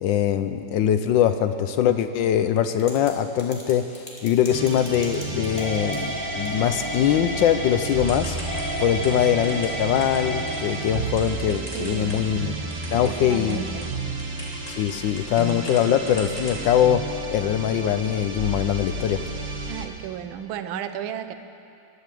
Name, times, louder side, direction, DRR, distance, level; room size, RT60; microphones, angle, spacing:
voice 1, 0.0-8.4 8.8-12.5 12.9-13.6 14.7-17.0 17.3-19.2, left 10 dB, 75° left, 10 dB, 1.1 m, -22 dB
Typing / Telephone, 2.7-3.1 3.4-12.4 12.7-15.8 16.1-16.6, left 1 dB, 15° left, 2.4 m, -33 dB
sound 1, 4.5-19.9, right 3 dB, 35° right, 0.8 m, -32 dB
voice 2, 11.7-12.2 12.9-14.0 19.7-21.3, right 10 dB, 70° right, 10 dB, 1.4 m, -33 dB
21.0 x 8.2 x 7.7 m, 2.6 s
omnidirectional pair, 2.4 m